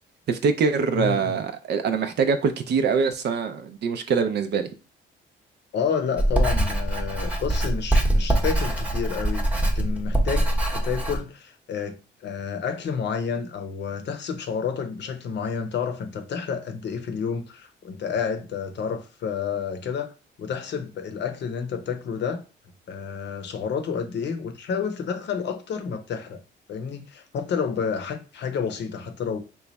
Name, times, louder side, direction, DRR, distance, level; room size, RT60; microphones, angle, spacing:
voice 1, 0.3-4.7, right 5 dB, 60° right, 0.5 m, -24 dB
voice 2, 0.9-1.3 5.7-20.1 20.4-22.4 22.9-26.4 26.7-29.4, left 6 dB, 60° left, 0.7 m, -30 dB
Writing, 6.2-11.2, right 1 dB, 5° right, 0.8 m, -23 dB
3.0 x 2.3 x 3.9 m
cardioid pair, 90°, 20 cm